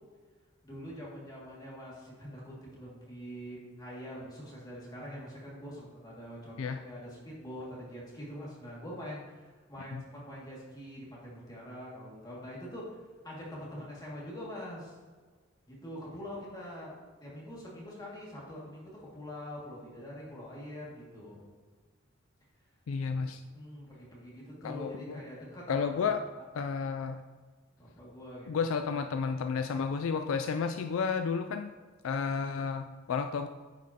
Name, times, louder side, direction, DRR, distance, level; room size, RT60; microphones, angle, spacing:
voice 1, 0.6-15.0 15.7-21.4 23.5-26.2 27.8-28.7, equal, 20° left, -5 dB, 2.1 m, -44 dB
voice 2, 22.9-23.4 24.6-25.2 25.7-26.2 26.5-27.2 28.5-31.7 32.0-33.5, left 5 dB, 70° left, 7 dB, 0.3 m, -32 dB
9.1 x 5.2 x 2.8 m, 1.5 s
head